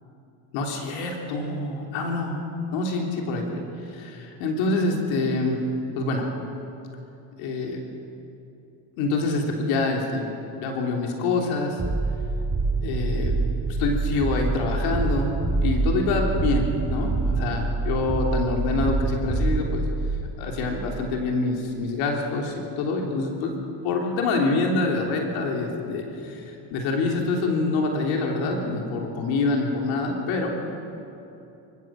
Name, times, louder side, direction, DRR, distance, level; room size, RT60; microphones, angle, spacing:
voice 1, 0.5-2.4 2.7-3.6 3.9-5.6 5.9-6.2 7.4-7.8 9.0-10.2 10.6-11.8 12.8-13.3 13.7-15.3 15.6-19.9 20.4-23.6 23.8-30.5, left 3 dB, 90° left, 1 dB, 3.3 m, -26 dB
sound 1, 11.8-20.9, right 3 dB, 20° right, 5.0 m, -26 dB
26.0 x 16.5 x 7.4 m, 2.8 s
supercardioid pair, 90°, 46 cm